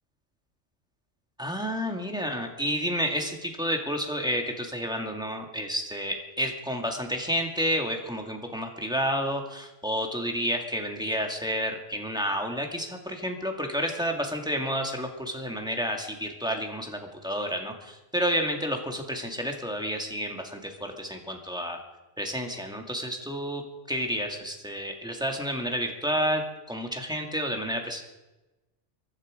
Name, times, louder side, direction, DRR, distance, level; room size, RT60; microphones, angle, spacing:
voice 1, 1.4-21.8 22.2-23.6 23.9-26.4 26.7-28.0, equal, 5° right, 2 dB, 2.1 m, -30 dB
24.0 x 11.5 x 5.0 m, 1.0 s
omnidirectional pair, 1.2 m